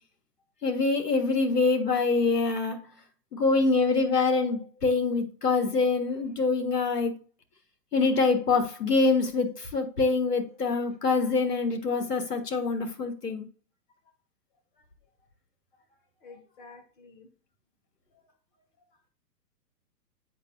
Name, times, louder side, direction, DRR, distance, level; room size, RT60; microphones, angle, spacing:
voice 1, 0.6-2.8 3.3-7.1 7.9-13.5, left 3 dB, 70° left, 1.6 m, -25 dB
voice 2, 16.2-17.3, left 4 dB, 30° left, 1.3 m, -50 dB
8.1 x 5.4 x 2.6 m
figure-of-eight pair, 120°, 49 cm